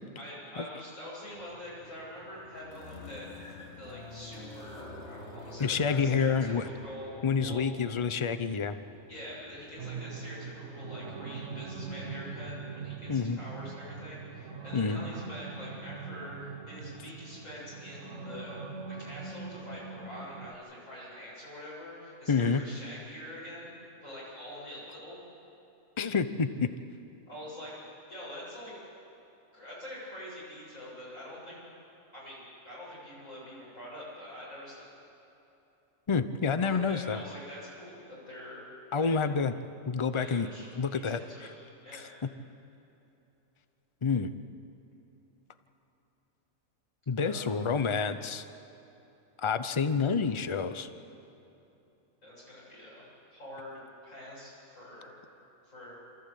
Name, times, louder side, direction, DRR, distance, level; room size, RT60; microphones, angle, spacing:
voice 1, 0.2-3.3 3.8-7.6 9.1-18.6 18.9-23.7 24.0-25.2 27.3-27.8 28.1-28.7 29.5-31.6 32.1-34.9 36.6-39.1 40.1-41.5 41.8-42.1 47.2-47.6 52.2-53.1 53.3-55.1 55.6-55.9, left 1 dB, 75° left, -7 dB, 7.9 m, -45 dB
sound 1, 1.3-9.9, left 2 dB, 55° left, 2.0 m, -48 dB
voice 2, 5.6-6.7 7.2-8.7 13.1-13.4 14.7-15.0 22.3-22.6 26.0-26.7 36.1-37.2 38.9-39.5 39.9-40.5 40.8-41.2 44.0-44.3 47.1-48.4 49.4-50.9, left 5 dB, 30° left, 11 dB, 0.6 m, -28 dB
sound 2, 9.8-20.5, right 4 dB, 65° right, 1.4 m, -42 dB
27.5 x 14.5 x 8.4 m, 3.0 s
omnidirectional pair, 1.4 m